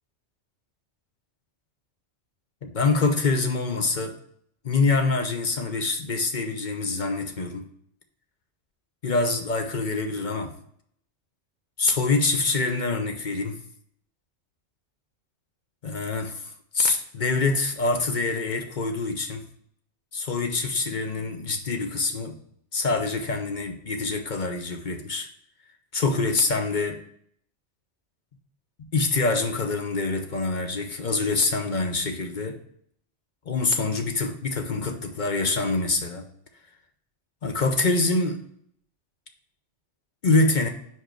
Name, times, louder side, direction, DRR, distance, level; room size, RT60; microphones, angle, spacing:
voice 1, 2.6-4.2 4.6-7.7 9.0-10.5 11.8-13.6 15.8-19.4 20.1-22.4 22.7-25.3 25.9-27.0 28.8-32.6 33.5-36.3 37.4-38.4 40.2-40.7, left 3 dB, 45° left, 5 dB, 0.8 m, -25 dB
5.3 x 4.6 x 4.5 m, 0.67 s
omnidirectional pair, 1.2 m